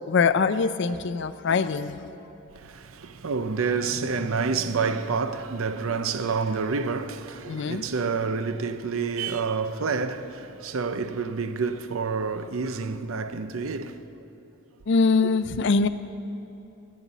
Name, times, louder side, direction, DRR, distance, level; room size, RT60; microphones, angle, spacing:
voice 1, 0.1-2.0 7.5-7.8 14.9-15.9, left 4 dB, 60° left, 0.4 m, -23 dB
voice 2, 2.5-14.0, right 5 dB, 80° right, 0.6 m, -28 dB
17.0 x 10.5 x 4.1 m
head